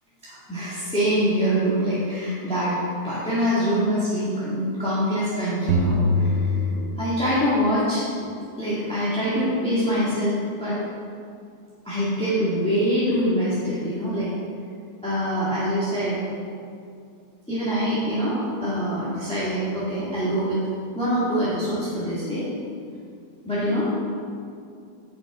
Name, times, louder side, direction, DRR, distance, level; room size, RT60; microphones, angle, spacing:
voice 1, 0.2-6.6 7.0-8.3 8.6-10.8 11.8-14.3 15.0-16.2 17.5-20.6 20.9-22.5 23.4-23.9, equal, 5° left, -11 dB, 1.9 m, -24 dB
sound 1, 5.7-7.5, left 1 dB, 70° right, 1.6 m, -23 dB
14.0 x 5.9 x 3.7 m, 2.4 s
omnidirectional pair, 1.8 m